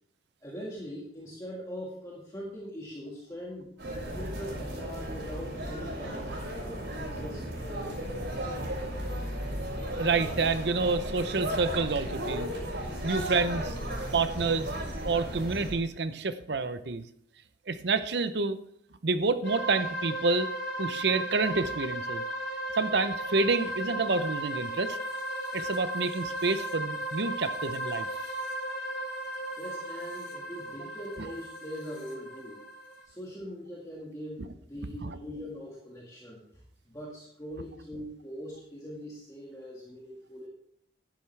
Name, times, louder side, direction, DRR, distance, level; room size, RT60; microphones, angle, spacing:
voice 1, 0.4-3.7 4.0-8.3 29.6-32.6 33.0-36.4 36.9-40.5, equal, 20° left, -4 dB, 1.8 m, -42 dB
sound 1, 3.8-15.7, right 1 dB, 90° right, 5.2 m, -35 dB
voice 2, 10.0-12.5 13.0-13.8 14.1-14.7 15.0-17.1 17.7-18.6 19.0-20.5 20.8-22.2 22.8-25.0 25.5-28.1 35.0-35.2, right 4 dB, 65° right, 12 dB, 0.7 m, -28 dB
sound 2, 19.4-33.0, right 1 dB, 85° left, 4.5 m, -36 dB
11.5 x 10.5 x 3.3 m, 0.70 s
head